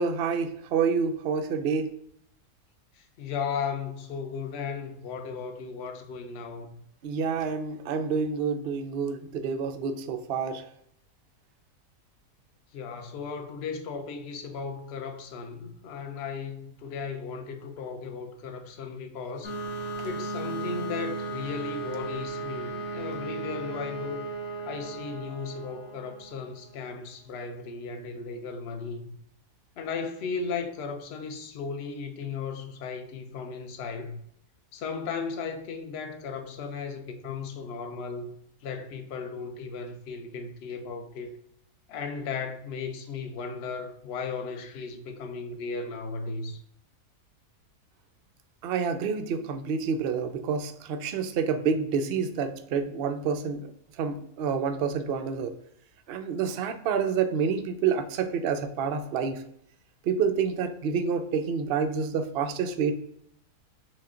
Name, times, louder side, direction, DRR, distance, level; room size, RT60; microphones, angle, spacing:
voice 1, 0.0-1.9 7.0-10.6 48.6-53.7 54.0-55.5 56.1-59.4 60.0-62.9, right 6 dB, 75° right, 0.5 m, -28 dB
voice 2, 2.9-6.8 12.7-24.3 24.6-29.1 29.8-34.2 34.7-38.3 38.6-41.3 41.9-46.6, left 5 dB, 55° left, 0.7 m, -36 dB
sound 1, 19.4-26.8, right 3 dB, 40° left, 1.3 m, -36 dB
6.2 x 2.2 x 3.7 m
omnidirectional pair, 1.7 m